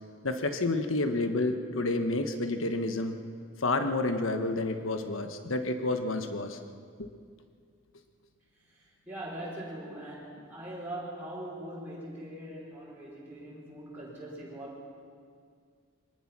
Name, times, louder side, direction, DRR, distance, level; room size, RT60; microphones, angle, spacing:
voice 1, 0.2-3.2 3.6-6.6 7.0-7.1, left 2 dB, 80° left, 7 dB, 1.3 m, -29 dB
voice 2, 8.7-14.8, right 1 dB, 10° right, -8 dB, 5.1 m, -41 dB
24.5 x 18.5 x 6.1 m, 2.1 s
head